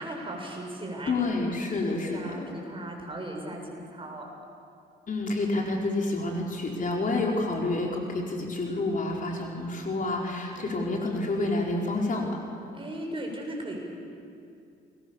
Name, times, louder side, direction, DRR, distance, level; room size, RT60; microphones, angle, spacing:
voice 1, 0.0-1.1 1.8-4.3 10.6-10.9 12.7-13.8, right 1 dB, 25° right, 0 dB, 7.0 m, -37 dB
voice 2, 1.1-2.5 5.1-12.3, left 2 dB, 40° left, 0 dB, 4.5 m, -29 dB
30.0 x 22.0 x 7.3 m, 2.4 s
cardioid pair, 90°, 20 cm